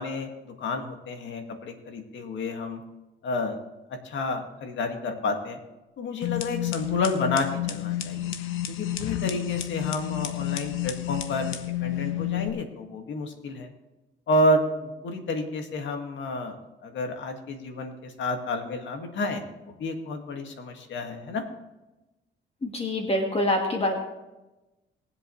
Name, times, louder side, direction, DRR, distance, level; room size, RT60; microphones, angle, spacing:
voice 1, 0.0-2.8 3.2-3.6 4.0-5.6 6.0-8.3 8.7-13.7 14.3-19.4 19.8-21.4, left 2 dB, 70° left, 4 dB, 2.0 m, -30 dB
sound 1, 6.2-12.5, left 13 dB, 90° left, 0.9 m, -30 dB
voice 2, 22.6-23.9, left 1 dB, 30° left, 2 dB, 1.7 m, -25 dB
21.0 x 8.0 x 3.2 m, 1.0 s
cardioid pair, 90°, 20 cm